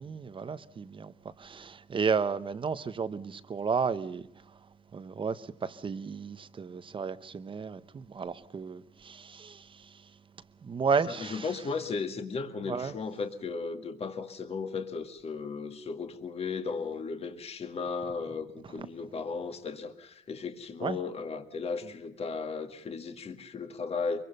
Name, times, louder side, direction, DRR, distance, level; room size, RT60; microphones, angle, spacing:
voice 1, 0.0-4.6 4.9-10.1 10.6-11.5 12.7-12.9 20.8-21.0, right 5 dB, 30° right, 0.9 m, -33 dB
voice 2, 11.1-24.2, left 4 dB, 35° left, 1.9 m, -35 dB
24.0 x 22.5 x 5.4 m
cardioid pair, 110°, 17 cm